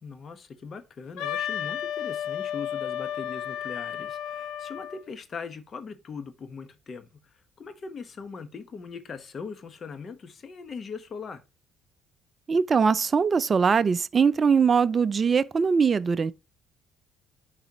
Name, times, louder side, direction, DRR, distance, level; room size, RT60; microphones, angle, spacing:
voice 1, 0.0-7.1 7.6-11.4, left 5 dB, 45° left, 1.2 m, -40 dB
Wind instrument woodwind instrument, 1.2-5.0, left 9 dB, 80° left, 1.5 m, -32 dB
voice 2, 12.5-16.3, right 5 dB, 40° right, 0.4 m, -22 dB
10.5 x 4.1 x 3.0 m
supercardioid pair, 70°, 0 cm